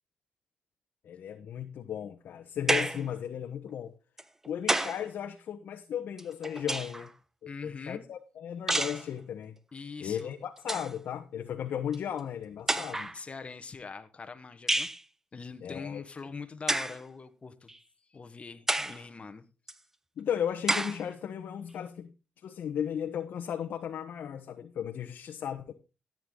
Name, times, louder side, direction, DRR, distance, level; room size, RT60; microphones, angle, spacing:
voice 1, 1.0-3.9 4.4-7.1 7.4-9.5 10.0-13.1 15.6-16.0 20.2-22.1 22.4-25.7, left 9 dB, 75° left, 1.2 m, -35 dB
sound 1, 2.7-3.1 4.2-5.1 6.2-7.1 8.7-9.1 10.2-10.3 10.6-10.9 11.9-12.0 12.7-13.2 14.7-15.0 16.7-17.0 17.7-17.8 18.7-19.0 19.7-19.8 20.7-21.0, right 1 dB, 10° right, 1.0 m, -29 dB
voice 2, 7.5-8.0 9.7-10.3 13.1-14.9 15.3-17.7 18.1-19.4, left 5 dB, 35° left, 1.4 m, -43 dB
14.5 x 9.0 x 3.9 m
cardioid pair, 80°, 3 cm